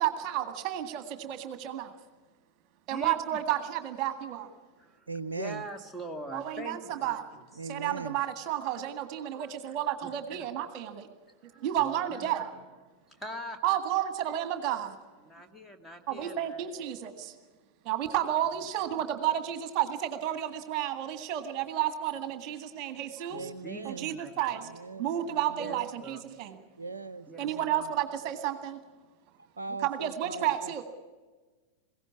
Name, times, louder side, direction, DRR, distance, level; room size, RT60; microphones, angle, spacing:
voice 1, 0.0-1.9 2.9-4.5 6.3-7.2 7.7-11.1 11.6-12.5 13.6-15.0 16.1-17.3 17.8-23.5 23.9-24.6 25.0-26.6 27.4-28.8 29.8-30.8, right 11 dB, 40° right, 8 dB, 1.9 m, -31 dB
voice 2, 2.9-3.4 4.8-7.8 9.3-9.5 10.0-10.4 11.4-12.4 13.1-13.6 15.2-16.9 18.9-19.0 23.3-24.4 25.6-26.2 27.3-27.7, right 1 dB, 5° left, 3 dB, 2.2 m, -43 dB
voice 3, 5.1-5.6 7.6-8.2 23.3-24.1 24.5-25.9 26.8-27.9 29.6-30.8, right 4 dB, 70° right, 13 dB, 0.6 m, -40 dB
22.0 x 17.0 x 8.6 m, 1.3 s
figure-of-eight pair, 90°, 0 cm